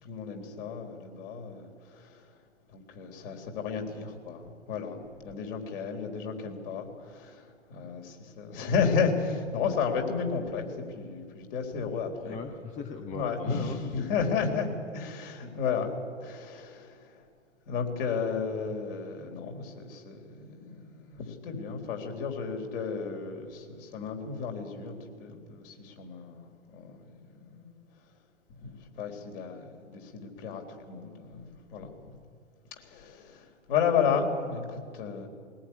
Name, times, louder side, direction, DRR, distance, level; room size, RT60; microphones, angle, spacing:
voice 1, 0.0-2.3 2.7-12.4 13.1-14.7 14.9-15.9 16.2-17.3 17.7-27.8 28.6-31.9 32.8-35.3, left 6 dB, 45° left, 3 dB, 4.0 m, -33 dB
voice 2, 12.2-14.1, left 5 dB, 20° left, 4 dB, 1.4 m, -38 dB
20.5 x 19.0 x 9.6 m, 2.1 s
figure-of-eight pair, 115°, 38 cm